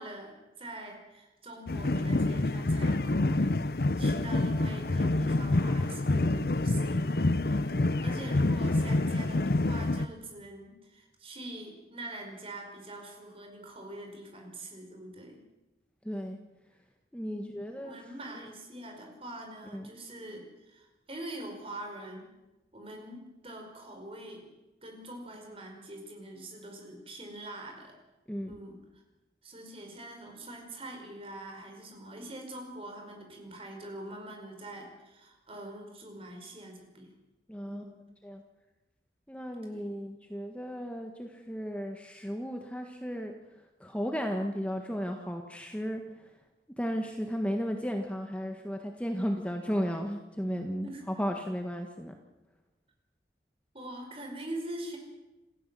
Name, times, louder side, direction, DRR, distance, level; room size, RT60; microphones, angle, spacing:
voice 1, 0.0-3.5 4.0-15.4 17.2-22.3 22.7-24.5 24.8-27.9 28.4-28.8 29.4-37.2 37.6-38.0 39.7-39.9 50.8-51.0 53.7-55.0, right 1 dB, 30° right, 3 dB, 5.0 m, -44 dB
sound 1, 1.7-10.1, left 2 dB, 60° left, 0.7 m, -27 dB
voice 2, 16.0-16.4 17.1-18.1 18.3-18.5 19.6-19.9 28.3-28.6 37.5-37.8 38.2-38.4 39.3-43.3 43.8-46.3 46.8-52.1, equal, 5° left, 3 dB, 1.4 m, -35 dB
28.0 x 15.0 x 7.6 m, 1.0 s
head